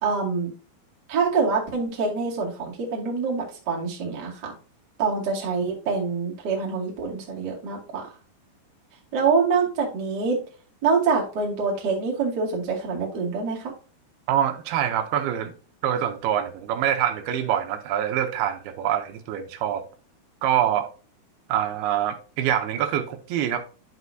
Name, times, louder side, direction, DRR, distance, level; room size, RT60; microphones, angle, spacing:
voice 1, 0.0-0.5 1.1-4.5 5.0-8.1 9.1-10.4 10.8-13.7, right 5 dB, 40° right, 1.6 m, -25 dB
voice 2, 14.3-15.5 15.8-19.8 20.4-20.9 21.5-23.6, right 10 dB, 80° right, 2.4 m, -25 dB
9.8 x 6.3 x 2.7 m
omnidirectional pair, 5.3 m